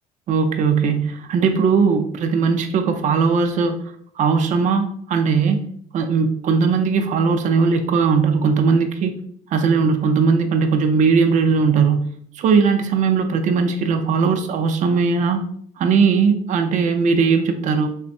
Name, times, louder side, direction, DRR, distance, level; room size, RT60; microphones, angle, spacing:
voice 1, 0.3-3.8 4.2-5.6 5.9-9.1 9.5-12.1 12.3-15.5 15.8-17.9, right 5 dB, 45° right, 6 dB, 0.4 m, -18 dB
3.2 x 2.0 x 2.6 m, 0.63 s
cardioid pair, 110°, 17 cm